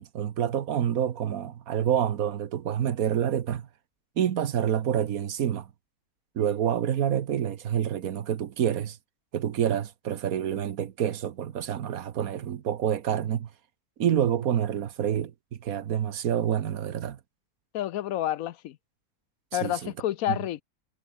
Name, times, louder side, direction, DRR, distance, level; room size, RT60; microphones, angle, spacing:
voice 1, 0.0-3.7 4.2-5.7 6.3-9.0 9.3-13.5 14.0-15.3 15.6-17.2 19.5-19.9 20.3-20.4, right 9 dB, 75° right, 1.4 m, -27 dB
voice 2, 17.7-18.8 19.5-20.6, left 12 dB, 75° left, 1.0 m, -29 dB
omnidirectional pair, 1.6 m